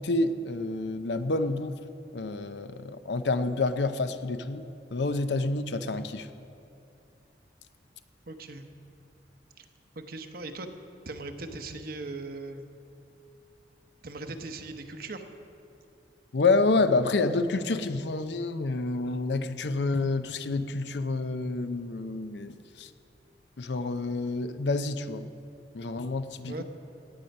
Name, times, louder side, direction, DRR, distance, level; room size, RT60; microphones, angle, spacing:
voice 1, 0.0-1.8 2.1-4.7 4.9-6.3 16.3-22.9 23.6-25.3 25.7-26.6, left 3 dB, 75° left, 10 dB, 0.6 m, -28 dB
voice 2, 8.3-8.7 9.6-9.7 10.0-10.7 11.1-12.6 14.0-15.2 26.5-26.6, right 2 dB, 55° right, 6 dB, 0.9 m, -39 dB
17.5 x 9.2 x 5.4 m, 2.6 s
head